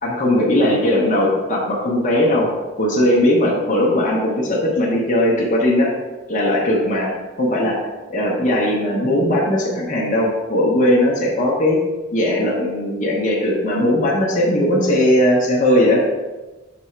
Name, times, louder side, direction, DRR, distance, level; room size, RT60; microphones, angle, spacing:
voice 1, 0.0-2.5 2.8-5.9 6.3-7.1 7.4-7.8 8.1-11.8 12.1-16.0, left 1 dB, 40° left, -3 dB, 1.0 m, -18 dB
6.1 x 3.5 x 4.4 m, 1.2 s
head